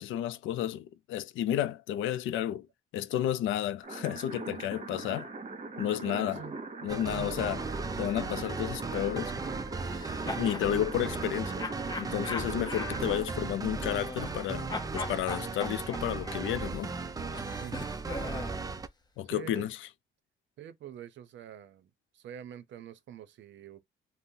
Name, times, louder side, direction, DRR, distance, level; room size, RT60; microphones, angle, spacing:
voice 1, 0.0-2.7 2.9-5.3 5.8-6.4 6.8-7.6 8.0-9.3 10.4-16.9 19.2-19.8, left 11 dB, 80° left, 0.4 m, -32 dB
sound 1, 3.8-13.3, right 3 dB, 35° right, 1.0 m, -41 dB
voice 2, 6.1-6.6 7.1-7.4 17.6-17.9 19.3-19.7 20.6-23.8, right 10 dB, 70° right, 0.6 m, -45 dB
sound 2, 6.9-18.9, right 4 dB, 20° right, 0.4 m, -37 dB
sound 3, 9.8-10.7 11.6-14.4 14.7-18.6, left 3 dB, 20° left, 0.7 m, -40 dB
3.6 x 2.0 x 2.7 m
cardioid pair, 90°, 20 cm